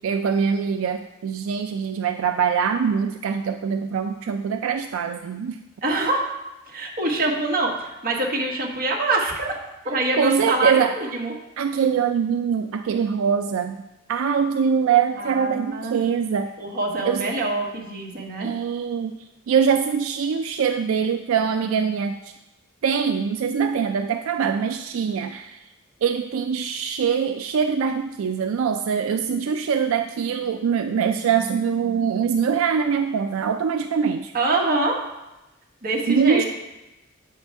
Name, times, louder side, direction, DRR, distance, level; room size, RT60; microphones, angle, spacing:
voice 1, 0.0-5.6 10.1-10.9 11.6-13.8 14.1-16.5 17.1-17.3 18.4-19.2 19.5-22.3 22.8-25.6 26.0-34.3 36.1-36.4, right 6 dB, 85° right, 7 dB, 0.3 m, -23 dB
voice 2, 5.8-6.3 6.7-9.5 9.8-11.3 15.2-16.0 16.6-18.5 34.3-35.0 35.8-36.5, right 2 dB, 45° right, -1 dB, 1.4 m, -25 dB
8.0 x 5.5 x 3.5 m, 0.98 s
head